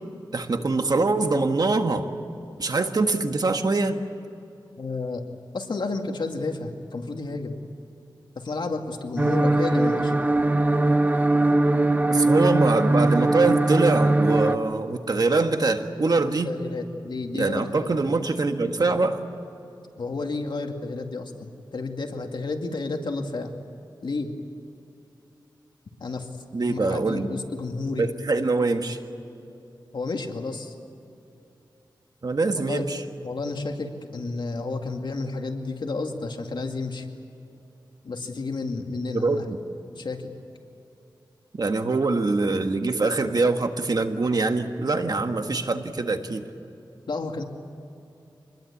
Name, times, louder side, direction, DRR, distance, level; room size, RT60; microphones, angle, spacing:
voice 1, 0.3-2.1 2.6-4.0 12.1-16.5 17.3-19.2 26.5-27.3 28.0-29.0 32.2-33.0 39.1-39.6 41.6-46.4, right 3 dB, 55° right, 6 dB, 1.6 m, -23 dB
voice 2, 4.8-5.2 5.5-7.6 8.4-10.1 16.5-18.0 20.0-23.5 24.0-24.3 26.0-26.3 26.7-28.1 29.9-30.7 32.6-32.8 33.2-37.1 38.0-39.4 40.0-40.3 47.1-47.4, left 3 dB, 70° left, 3 dB, 2.3 m, -31 dB
sound 1, 9.2-14.6, right 2 dB, 20° right, 0.9 m, -21 dB
26.0 x 21.0 x 8.6 m, 2.8 s
wide cardioid pair, 85°, 8 cm